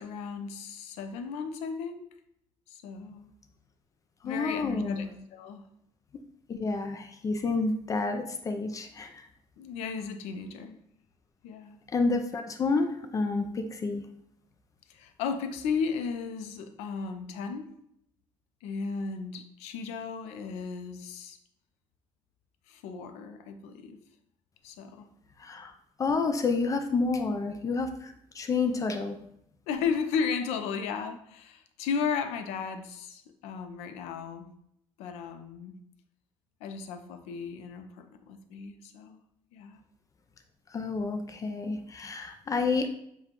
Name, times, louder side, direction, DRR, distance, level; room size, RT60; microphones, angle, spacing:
voice 1, 0.0-2.0 2.7-3.3 4.2-5.7 9.6-10.8 11.4-11.8 14.9-17.7 18.6-21.4 22.7-24.0 24.6-25.1 29.7-34.5 35.0-35.7 36.6-39.2 39.5-39.8, left 5 dB, 85° left, 8 dB, 0.5 m, -35 dB
voice 2, 4.2-5.1 6.5-9.3 11.9-14.0 25.4-25.7 26.0-29.2 40.7-42.9, left 4 dB, 30° left, 7 dB, 0.4 m, -29 dB
6.8 x 2.3 x 2.9 m, 0.75 s
cardioid pair, 110°, 11 cm